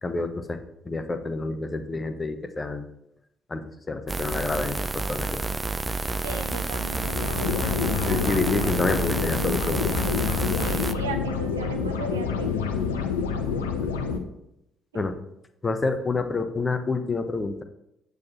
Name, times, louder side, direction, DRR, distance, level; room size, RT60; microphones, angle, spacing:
voice 1, 0.0-2.9 3.5-5.4 8.0-9.9 13.6-14.0 14.9-15.2 15.6-17.6, left 3 dB, 25° left, 8 dB, 1.1 m, -28 dB
sound 1, 4.1-10.9, right 2 dB, 20° right, 0.6 m, -29 dB
voice 2, 6.2-8.7 10.6-12.7 14.9-15.0, right 4 dB, 80° right, 6 dB, 0.8 m, -37 dB
sound 2, 6.9-14.2, left 6 dB, 75° left, 0.8 m, -28 dB
8.7 x 8.3 x 4.3 m, 0.82 s
figure-of-eight pair, 45°, 0 cm